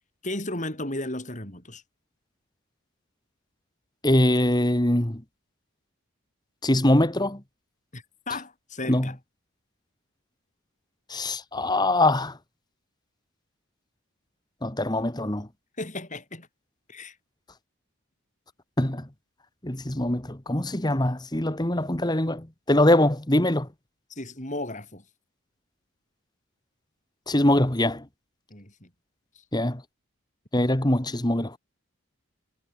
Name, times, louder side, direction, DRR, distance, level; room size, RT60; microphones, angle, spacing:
voice 1, 0.2-1.8 7.9-9.2 15.8-16.5 16.9-17.2 24.1-25.0 28.5-28.9 29.3-29.4, left 2 dB, 35° left, 6.9 m, -35 dB
voice 2, 4.0-5.2 6.6-7.4 8.9-9.1 11.1-12.4 14.6-15.5 18.8-19.1 19.6-23.7 27.3-28.0 29.5-29.8 30.5-31.5, left 1 dB, 20° left, 1.6 m, -23 dB
head